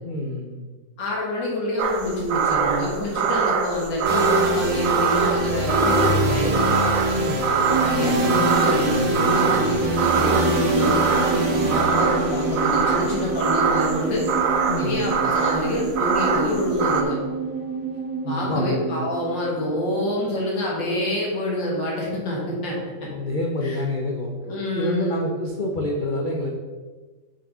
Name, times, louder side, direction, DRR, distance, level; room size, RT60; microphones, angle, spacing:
voice 1, 0.0-0.7 7.2-7.5 14.7-15.0 18.2-19.0 23.1-24.4 24.7-26.5, left 2 dB, 50° left, -1 dB, 0.6 m, -27 dB
voice 2, 1.0-6.8 7.8-14.2 14.8-17.2 18.3-23.1 23.6-23.8 24.4-25.3, left 1 dB, 75° left, -4 dB, 2.5 m, -26 dB
sound 1, 1.8-17.0, right 6 dB, 60° right, 0.9 m, -24 dB
sound 2, 4.0-17.9, right 1 dB, 80° right, 2.0 m, -25 dB
sound 3, 7.7-20.2 20.5-20.6, right 6 dB, 25° right, 2.3 m, -30 dB
6.0 x 5.2 x 5.5 m, 1.3 s
omnidirectional pair, 2.0 m